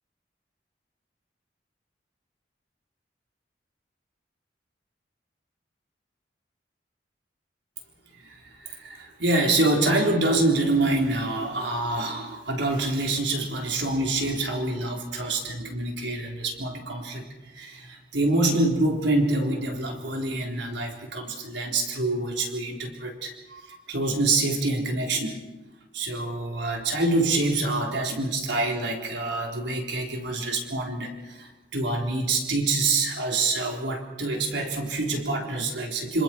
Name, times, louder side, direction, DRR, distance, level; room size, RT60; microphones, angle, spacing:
voice 1, 8.2-17.2 17.5-25.4 25.9-36.2, right 2 dB, 80° right, 1 dB, 4.1 m, -26 dB
26.5 x 26.5 x 4.6 m, 1.1 s
head